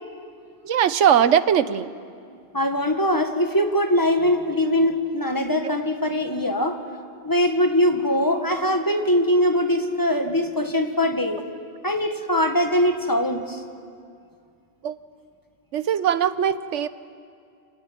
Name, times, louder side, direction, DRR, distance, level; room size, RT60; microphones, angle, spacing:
voice 1, 0.6-1.9 14.8-15.0 15.7-16.9, right 9 dB, 90° right, 13 dB, 1.1 m, -20 dB
voice 2, 2.3-6.8 7.2-11.4 11.8-13.6, left 1 dB, 15° left, 5 dB, 1.5 m, -22 dB
26.5 x 16.0 x 9.9 m, 2.3 s
omnidirectional pair, 1.2 m